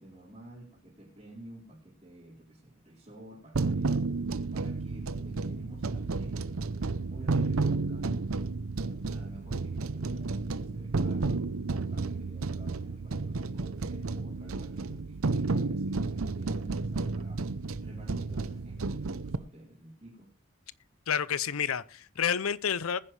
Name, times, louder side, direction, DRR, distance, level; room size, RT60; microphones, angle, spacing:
voice 1, 0.0-4.0 4.5-6.6 7.1-8.3 9.1-20.4, right 1 dB, 25° right, 4.5 m, -51 dB
sound 1, 3.5-19.4, right 3 dB, 80° right, 0.7 m, -32 dB
voice 2, 21.1-23.0, left 8 dB, 85° left, 0.6 m, -29 dB
20.5 x 10.0 x 3.3 m
head